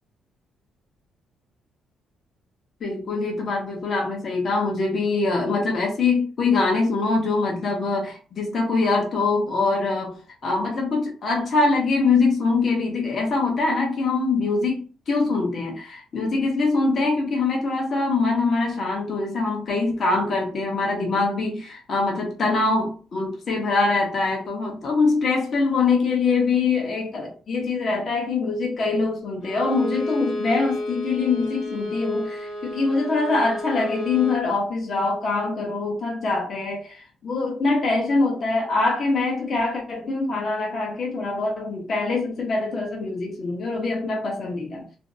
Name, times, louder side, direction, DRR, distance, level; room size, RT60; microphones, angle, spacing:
voice 1, 2.8-10.2 10.4-44.8, left 3 dB, 50° left, 0.8 m, -23 dB
Bowed string instrument, 29.4-34.4, left 1 dB, 80° left, 0.9 m, -31 dB
2.5 x 2.0 x 2.6 m
cardioid pair, 90°, 0 cm